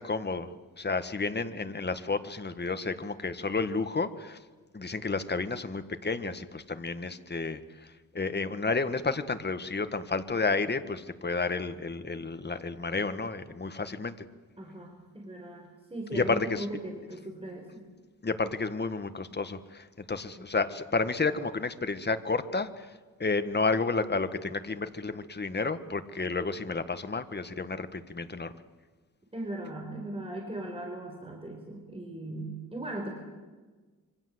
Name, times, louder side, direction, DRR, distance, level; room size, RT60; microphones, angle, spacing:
voice 1, 0.0-4.4 4.7-14.1 16.1-16.6 18.2-22.9 23.2-28.5, left 4 dB, 30° left, 10 dB, 1.6 m, -31 dB
voice 2, 14.6-17.9 20.1-20.5 29.3-33.1, right 1 dB, 15° right, 1 dB, 4.9 m, -39 dB
26.5 x 24.5 x 8.0 m, 1.3 s
wide cardioid pair, 120°, 35 cm